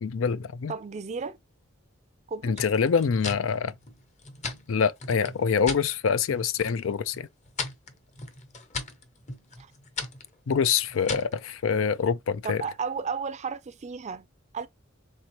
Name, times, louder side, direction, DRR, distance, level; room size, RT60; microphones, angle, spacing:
voice 1, 0.0-0.7 2.4-3.7 4.7-7.3 10.5-12.6, left 6 dB, 80° left, 0.4 m, -25 dB
voice 2, 0.7-1.4 2.3-2.6 9.6-9.7 12.4-14.3 14.5-14.7, right 5 dB, 35° right, 0.5 m, -33 dB
sound 1, 2.5-5.9 6.3-6.8 7.1-11.4, left 3 dB, 35° left, 0.8 m, -38 dB
4.4 x 3.3 x 2.9 m
head